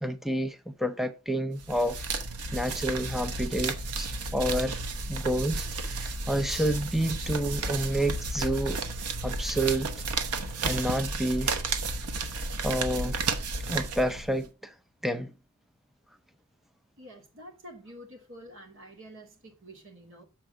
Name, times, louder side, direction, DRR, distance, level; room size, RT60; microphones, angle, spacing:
voice 1, 0.0-2.0 2.5-4.8 5.1-8.8 9.2-9.9 10.6-11.5 12.4-13.2 13.7-14.7 15.0-15.3, right 1 dB, ahead, 0.6 m, -29 dB
sound 1, 1.6-14.5, right 3 dB, 90° right, 1.0 m, -32 dB
voice 2, 17.0-20.2, equal, 60° right, 2.5 m, -48 dB
7.3 x 4.5 x 4.9 m
head